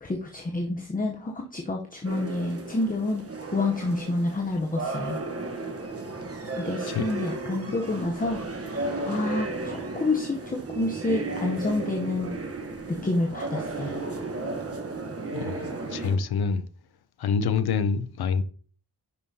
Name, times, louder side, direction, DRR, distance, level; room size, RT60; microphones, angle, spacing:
voice 1, 0.0-3.2 3.5-5.2 6.6-8.4 9.0-12.3 13.0-14.0, left 2 dB, 20° left, 0.8 m, -28 dB
sound 1, 2.0-16.2, right 3 dB, 35° right, 1.2 m, -34 dB
voice 2, 15.3-16.6 17.2-18.4, left 5 dB, 75° left, 0.7 m, -26 dB
10.0 x 5.5 x 2.8 m
wide cardioid pair, 135°, 38 cm